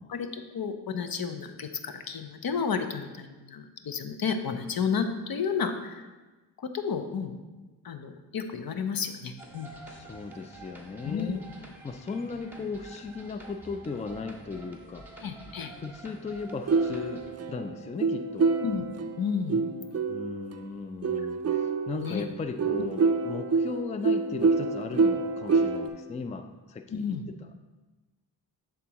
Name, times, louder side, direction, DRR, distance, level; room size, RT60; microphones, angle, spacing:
voice 1, 0.1-6.0 6.6-7.4 7.8-9.7 11.0-11.4 15.2-15.7 18.6-18.8 19.2-19.6 22.0-22.2 26.9-27.2, left 6 dB, 60° left, 8 dB, 0.7 m, -32 dB
sound 1, 9.4-17.3, right 2 dB, 5° right, 1.4 m, -48 dB
voice 2, 9.9-11.4 11.8-15.1 15.8-18.5 20.1-27.5, left 4 dB, 20° left, 8 dB, 0.4 m, -37 dB
sound 2, 16.7-20.5 21.0-25.9, right 4 dB, 40° right, 0.5 m, -27 dB
11.0 x 3.8 x 2.9 m, 1.2 s
cardioid pair, 50°, 41 cm